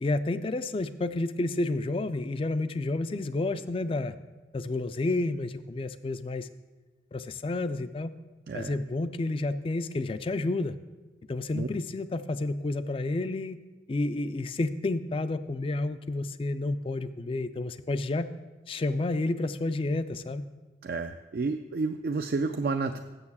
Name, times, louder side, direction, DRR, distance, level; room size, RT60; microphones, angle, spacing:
voice 1, 0.0-4.1 4.5-6.5 7.1-8.1 8.5-10.8 11.3-13.6 13.9-18.3 18.7-20.5, left 2 dB, 30° left, 13 dB, 0.3 m, -30 dB
voice 2, 20.8-23.0, right 4 dB, 55° right, 7 dB, 0.3 m, -30 dB
7.0 x 6.7 x 7.0 m, 1.2 s
head